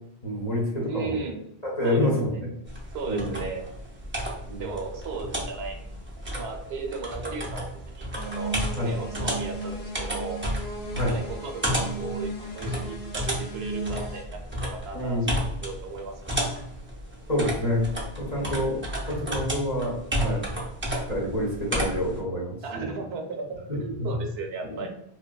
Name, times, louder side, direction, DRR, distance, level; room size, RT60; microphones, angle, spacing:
voice 1, 0.2-1.2 1.6-2.5 3.1-3.4 4.5-4.6 8.8-8.9 10.9-11.2 14.9-15.3 17.3-17.9 18.2-20.5 21.1-22.9 24.6-24.9, left 1 dB, 40° left, -5 dB, 0.8 m, -28 dB
voice 2, 0.9-1.4 1.8-2.4 2.9-3.6 4.6-5.9 6.3-8.5 8.8-10.4 11.1-15.3 15.6-16.1 18.4-18.9 22.6-23.5 23.7-24.9, right 4 dB, 75° right, 3 dB, 0.8 m, -36 dB
sound 1, 2.7-22.2, equal, 20° right, 0.3 m, -32 dB
sound 2, 8.2-14.2, right 2 dB, 75° left, 0.8 m, -36 dB
2.8 x 2.2 x 2.3 m, 0.77 s
omnidirectional pair, 1.1 m